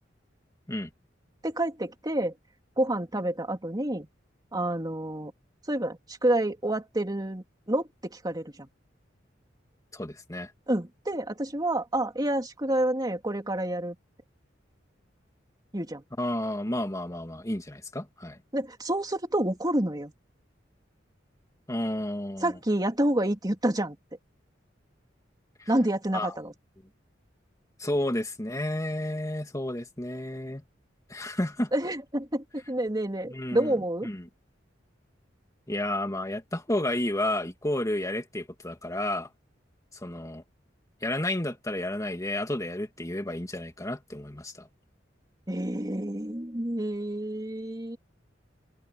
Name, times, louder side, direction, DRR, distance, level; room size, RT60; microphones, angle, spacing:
voice 1, 1.4-2.3 2.8-4.1 4.5-5.3 5.7-8.7 10.7-13.9 15.7-16.0 18.5-20.1 22.4-24.0 25.7-26.5 31.7-34.1 45.5-48.0, right 1 dB, 20° right, 3.1 m, -28 dB
voice 2, 9.9-10.5 16.2-18.4 21.7-22.6 25.6-25.7 26.1-26.4 27.8-30.6 31.1-31.7 33.3-33.8 34.0-34.3 35.7-39.3 39.9-40.4 41.0-44.7, left 1 dB, 20° left, 2.2 m, -31 dB
open air
head